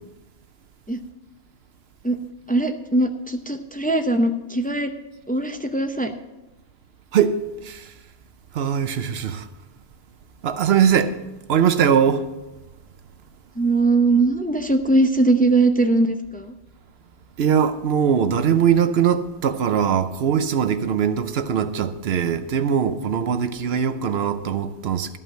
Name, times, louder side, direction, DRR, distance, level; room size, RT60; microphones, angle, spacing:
voice 1, 2.5-4.9 5.3-6.1 13.6-16.5, right 2 dB, 10° left, 0.5 m, -20 dB
voice 2, 8.5-9.4 10.4-11.2 11.5-12.2 17.4-25.2, right 8 dB, 70° right, 0.9 m, -21 dB
13.0 x 5.6 x 7.5 m
omnidirectional pair, 1.1 m